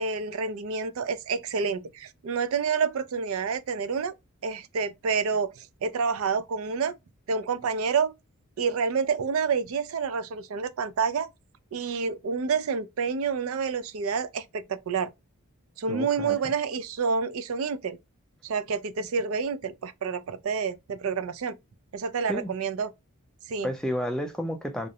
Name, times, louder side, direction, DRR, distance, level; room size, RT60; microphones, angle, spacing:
voice 1, 0.0-4.1 4.4-6.9 7.3-8.1 8.6-11.3 11.7-15.1 15.8-18.0 18.4-21.6 21.9-22.9 23.5-23.7, right 5 dB, 70° right, 0.4 m, -28 dB
voice 2, 15.9-16.4 22.3-22.5 23.6-24.9, equal, 5° left, 0.3 m, -31 dB
2.5 x 2.0 x 2.6 m
head